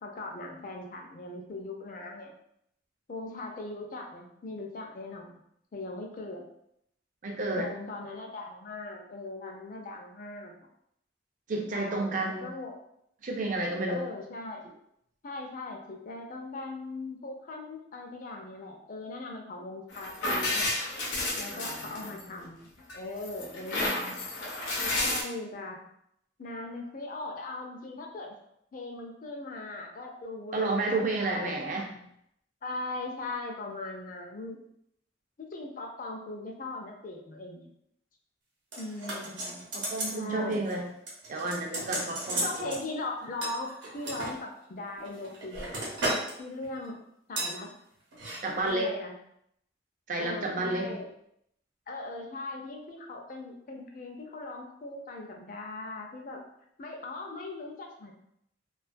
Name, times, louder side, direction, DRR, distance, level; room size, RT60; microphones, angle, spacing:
voice 1, 0.0-2.3 3.1-5.4 5.7-6.4 7.6-10.5 11.7-12.8 13.9-14.6 15.2-20.7 21.4-24.3 24.8-25.8 26.4-28.3 28.7-32.0 32.6-34.6 35.4-37.7 38.8-39.7 40.1-40.7 42.4-45.7 46.4-47.0 47.3-47.7 48.6-49.1 50.2-51.1 51.9-56.4 56.8-58.1, left 2 dB, 45° left, 2 dB, 0.4 m, -39 dB
voice 2, 7.2-7.7 11.5-12.5 13.2-14.1 21.5-22.3 30.5-31.9 39.7-40.9 41.3-42.7 48.4-48.9 50.1-51.0, right 2 dB, 45° right, 1 dB, 0.4 m, -31 dB
sound 1, 19.9-22.4 22.9-25.2, left 2 dB, 85° left, 0.7 m, -31 dB
sound 2, 38.7-40.2 40.5-40.8 41.1-42.8 43.4-44.3 45.0-46.3 46.6-46.9 47.4-47.6 48.1-48.4 48.7-48.8, right 1 dB, 90° right, 0.8 m, -34 dB
2.3 x 2.2 x 2.5 m, 0.74 s
head